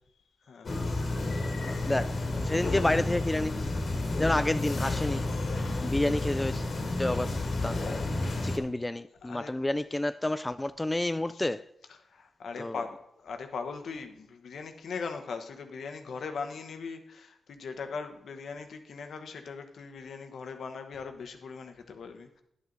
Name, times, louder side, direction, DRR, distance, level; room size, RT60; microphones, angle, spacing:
sound 1, 0.6-8.6, left 2 dB, 60° left, 1.7 m, -31 dB
voice 1, 1.6-3.6 4.2-5.2 5.8-6.6 7.0-7.3 7.6-7.8 8.4-11.7 12.6-12.8, left 1 dB, 20° left, 12 dB, 0.4 m, -29 dB
voice 2, 9.2-9.5 11.3-11.4 12.1-22.4, left 5 dB, 75° left, 6 dB, 1.1 m, -40 dB
11.0 x 6.8 x 4.0 m, 0.75 s
supercardioid pair, 50°, 0 cm